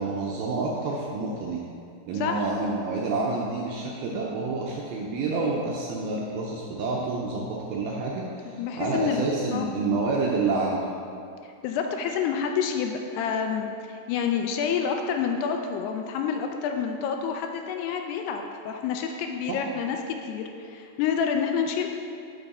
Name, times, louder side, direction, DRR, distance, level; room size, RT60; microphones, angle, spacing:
voice 1, 0.0-1.6 2.1-10.8 19.5-19.6, right 3 dB, 80° right, -3 dB, 2.2 m, -28 dB
voice 2, 2.1-2.5 8.5-9.7 11.4-21.9, left 7 dB, 80° left, 4 dB, 2.5 m, -28 dB
10.5 x 5.4 x 4.1 m, 2.5 s
omnidirectional pair, 4.9 m